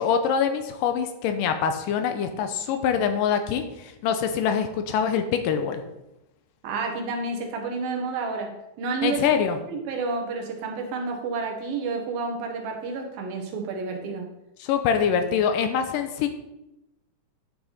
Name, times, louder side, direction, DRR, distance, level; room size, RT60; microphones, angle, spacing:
voice 1, 0.0-5.8 9.0-9.6 14.6-16.3, left 7 dB, 80° left, 7 dB, 2.2 m, -24 dB
voice 2, 6.6-9.4 9.7-14.3, right 4 dB, 85° right, 2 dB, 3.1 m, -30 dB
11.0 x 6.1 x 4.2 m, 0.92 s
omnidirectional pair, 4.1 m